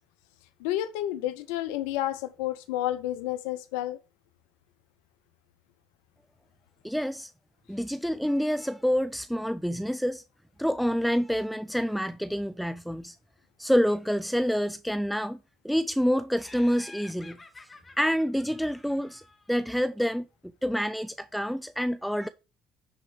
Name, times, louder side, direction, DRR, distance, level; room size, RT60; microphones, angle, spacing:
voice 1, 0.6-4.0, left 13 dB, 80° left, 0.6 m, -30 dB
voice 2, 6.8-7.3 7.7-10.2 10.6-13.2 13.6-15.4 15.6-17.7 18.0-19.2 19.5-20.3 20.6-22.3, equal, ahead, 0.5 m, -27 dB
Laughter, 16.4-19.7, left 3 dB, 25° left, 2.0 m, -50 dB
10.0 x 4.4 x 5.0 m
hypercardioid pair, 65°, 0 cm